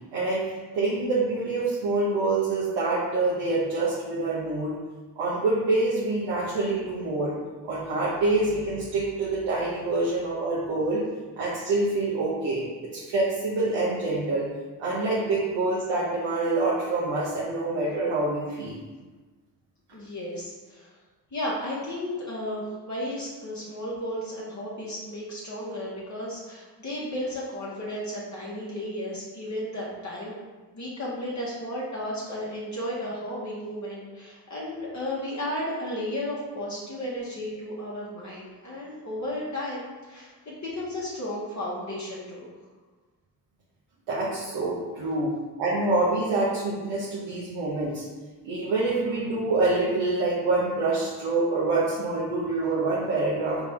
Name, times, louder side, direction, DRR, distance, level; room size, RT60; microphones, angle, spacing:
voice 1, 0.1-4.8 5.2-7.3 7.6-11.0 11.4-12.6 12.9-14.5 14.8-18.8 44.1-45.3 45.6-48.0 48.4-53.6, right 2 dB, 80° right, -8 dB, 0.9 m, -26 dB
voice 2, 19.9-20.9 21.3-30.3 30.7-42.5, left 1 dB, 40° left, -6 dB, 1.3 m, -34 dB
4.1 x 3.5 x 3.6 m, 1.3 s
supercardioid pair, 40°, 43 cm